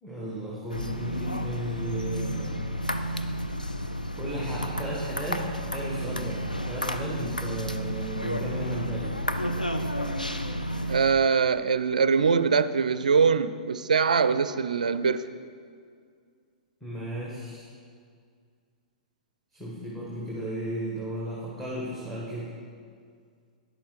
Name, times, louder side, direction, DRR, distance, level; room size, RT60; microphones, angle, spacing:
voice 1, 0.0-2.6 4.2-9.2 16.8-17.7 19.5-22.5, right 1 dB, 5° left, -6 dB, 1.5 m, -35 dB
sound 1, 0.7-11.1, equal, 90° left, 0.5 m, -31 dB
voice 2, 10.9-15.2, right 5 dB, 70° right, 13 dB, 0.4 m, -23 dB
9.9 x 7.1 x 4.9 m, 2.1 s
figure-of-eight pair, 105°, 4 cm